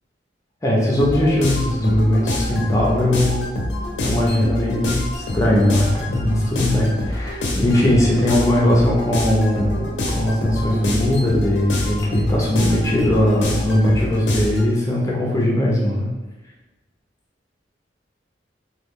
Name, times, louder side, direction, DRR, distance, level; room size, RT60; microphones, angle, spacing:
voice 1, 0.6-3.4 4.0-16.1, left 1 dB, 15° left, -3 dB, 0.5 m, -19 dB
sound 1, 1.0-14.7, left 1 dB, 70° left, 0.5 m, -26 dB
3.0 x 2.3 x 3.6 m, 1.1 s
head